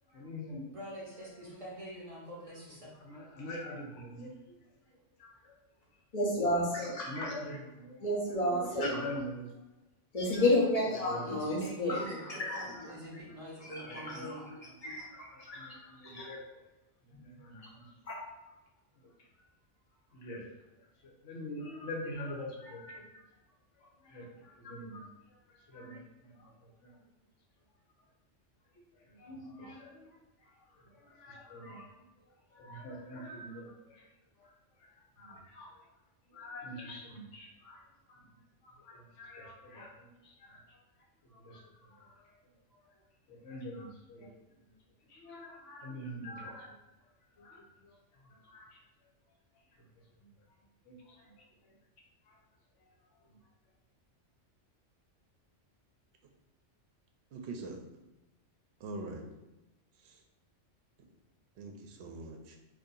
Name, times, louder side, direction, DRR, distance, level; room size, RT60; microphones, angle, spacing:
voice 1, 0.0-0.8 1.2-1.4 2.8-4.5 4.9-5.6 5.8-6.0 6.9-8.1 8.8-9.7 10.3-10.4 11.0-11.5 11.9-12.0 12.7-12.8 13.3-14.5 15.1-16.6 17.2-17.6 20.1-20.5 20.8-27.1 28.7-35.9 36.2-44.7 45.0-50.6 50.8-51.8 52.2-52.5 52.8-53.5, left 1 dB, 80° left, -1 dB, 1.1 m, -47 dB
voice 2, 0.7-2.9 11.3-12.3 12.9-14.4, equal, 35° right, -5 dB, 0.6 m, -45 dB
voice 3, 6.1-7.3 8.0-9.1 10.1-13.2 13.6-14.3 14.8-15.8 16.0-16.3 18.1-18.2, left 1 dB, 35° left, -3 dB, 0.8 m, -32 dB
voice 4, 57.3-57.8 58.8-59.2 59.9-60.2 61.6-62.6, right 2 dB, 70° right, 3 dB, 0.8 m, -43 dB
2.7 x 2.6 x 3.7 m, 1.0 s
omnidirectional pair, 1.2 m